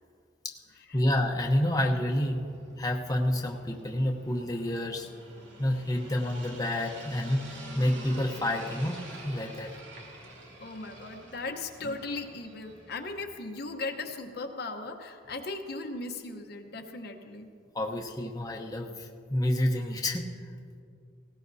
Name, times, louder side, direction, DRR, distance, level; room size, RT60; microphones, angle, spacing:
voice 1, 0.9-2.4 2.8-5.1 5.6-9.7 17.7-20.3, left 1 dB, 20° left, 0 dB, 0.9 m, -29 dB
sound 1, 1.7-13.3, right 1 dB, 80° right, 2.3 m, -48 dB
voice 2, 10.6-17.5, left 3 dB, 60° left, 4 dB, 1.0 m, -37 dB
19.0 x 17.5 x 2.7 m, 2.3 s
head